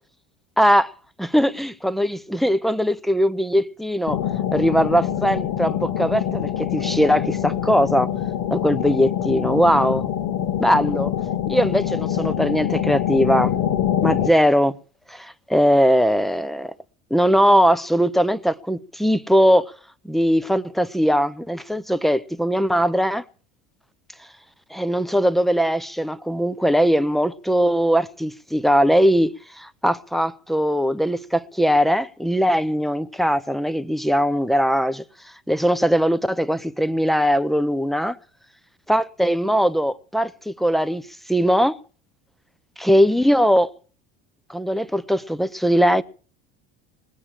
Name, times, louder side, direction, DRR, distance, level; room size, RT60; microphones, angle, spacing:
voice 1, 0.6-0.9 1.2-4.2 4.5-8.1 8.5-10.1 10.6-11.1 11.5-13.5 14.0-14.8 15.1-16.7 17.1-19.7 20.0-23.2 24.7-35.0 35.5-38.2 38.9-41.8 42.8-43.7 44.5-46.0, equal, ahead, 0.7 m, -20 dB
sound 1, 4.1-14.3, left 10 dB, 65° left, 2.0 m, -25 dB
20.0 x 8.5 x 7.5 m
supercardioid pair, 105°, 33 cm